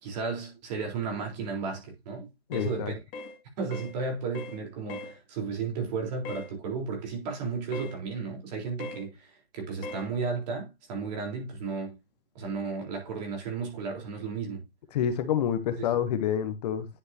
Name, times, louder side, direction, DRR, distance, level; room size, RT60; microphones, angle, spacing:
voice 1, 0.0-2.9 3.6-12.0 12.3-14.6 15.8-15.9, right 4 dB, 45° right, 4.0 m, -34 dB
voice 2, 2.5-2.9 14.9-16.9, left 9 dB, 40° left, 1.0 m, -28 dB
sound 1, 2.5-2.8 3.1-3.4 3.7-3.9 4.3-4.6 4.9-5.1 6.2-6.5 7.7-8.0 8.8-9.0 9.8-10.1, left 3 dB, 25° left, 2.1 m, -39 dB
10.0 x 6.4 x 2.8 m
hypercardioid pair, 140°, 30 cm